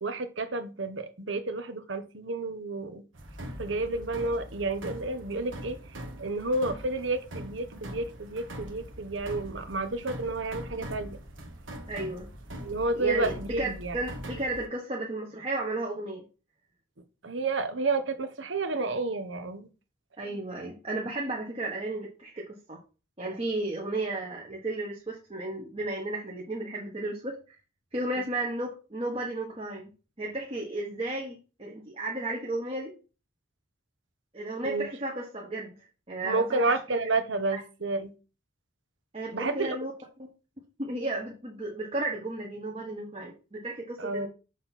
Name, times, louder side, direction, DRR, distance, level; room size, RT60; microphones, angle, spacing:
voice 1, 0.0-3.0 3.6-5.8 6.2-11.2 12.6-14.0 17.2-19.7 20.3-20.4 34.6-34.9 36.2-38.1 39.3-39.8 44.0-44.3, right 3 dB, 70° right, 1.0 m, -30 dB
sound 1, 3.1-14.7, equal, 90° right, 1.5 m, -42 dB
voice 2, 11.9-12.3 12.9-16.2 20.2-22.8 23.2-27.4 27.9-29.9 30.2-32.9 34.3-35.7 36.1-36.6 37.5-37.6 39.1-39.9 40.8-44.3, right 2 dB, 30° right, 1.2 m, -33 dB
6.6 x 4.0 x 5.8 m
head